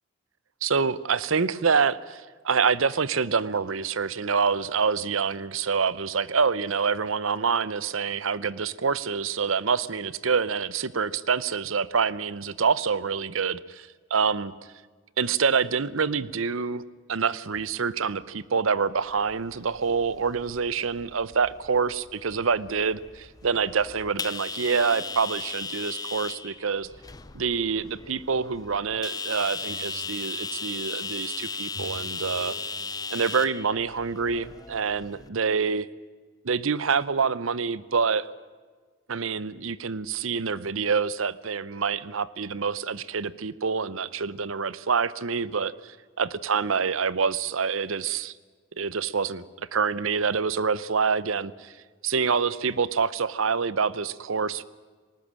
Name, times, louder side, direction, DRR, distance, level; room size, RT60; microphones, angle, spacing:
voice 1, 0.6-14.5 15.2-16.8 17.1-26.9 27.3-32.5 33.1-35.9 36.4-38.3 39.1-48.3 48.8-51.7 52.0-54.6, right 5 dB, 80° right, 19 dB, 0.8 m, -26 dB
sound 1, 19.2-35.3, left 5 dB, 20° left, 0.6 m, -37 dB
sound 2, 24.5-25.5 25.9-26.5 27.2-33.2, left 2 dB, 70° left, 1.5 m, -49 dB
19.5 x 19.0 x 8.8 m, 1.5 s
head